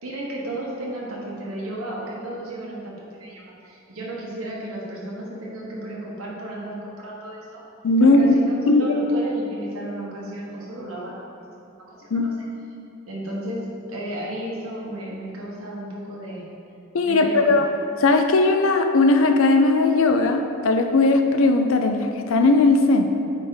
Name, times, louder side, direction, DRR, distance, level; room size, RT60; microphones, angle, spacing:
voice 1, 0.0-7.6 8.0-11.2 11.5-12.3 13.1-13.6 13.9-16.4 17.0-17.5, right 1 dB, 70° right, -4 dB, 1.4 m, -33 dB
voice 2, 7.8-8.4 8.7-8.8 12.1-12.3 16.9-17.7 18.0-23.1, left 3 dB, 65° left, 6 dB, 0.5 m, -18 dB
8.8 x 3.6 x 3.9 m, 2.6 s
head